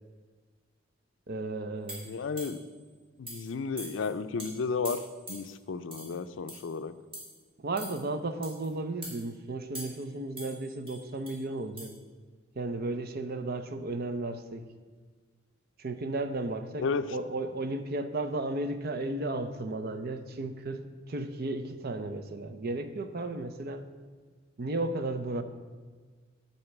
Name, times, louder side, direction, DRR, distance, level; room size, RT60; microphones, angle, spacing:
voice 1, 1.3-2.0 7.6-11.9 12.6-14.7 15.8-16.8 17.1-23.9 24.6-25.4, right 2 dB, 50° right, 9 dB, 0.6 m, -34 dB
sound 1, 1.9-2.7 3.3-3.5 3.8-4.1 4.4-4.5 4.8-5.5 5.9-6.1 6.5-6.7 7.1-7.3 7.8-8.0 8.4-8.7 9.0-9.2 9.7-10.1 10.4-11.4 11.8-11.9, right 1 dB, 30° right, 2.6 m, -43 dB
voice 2, 2.0-2.6 3.2-6.9 16.8-17.2, left 4 dB, 65° left, 12 dB, 0.4 m, -33 dB
9.8 x 4.3 x 7.1 m, 1.5 s
head